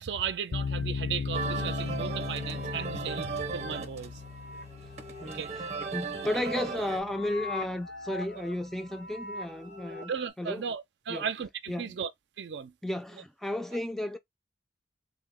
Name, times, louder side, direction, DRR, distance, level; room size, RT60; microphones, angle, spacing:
voice 1, 0.0-4.2 5.2-5.5 10.1-12.1 12.4-12.7, right 7 dB, 75° right, 0.4 m, -36 dB
sound 1, 0.5-7.6, left 5 dB, 60° left, 0.5 m, -37 dB
sound 2, 1.3-7.0, right 4 dB, 35° right, 0.7 m, -37 dB
sound 3, 1.9-10.3, left 2 dB, 75° left, 1.4 m, -44 dB
voice 2, 5.9-10.1 10.4-10.6 11.1-11.3 11.7-12.0 12.8-14.2, left 1 dB, ahead, 0.3 m, -33 dB
3.6 x 2.0 x 3.5 m
head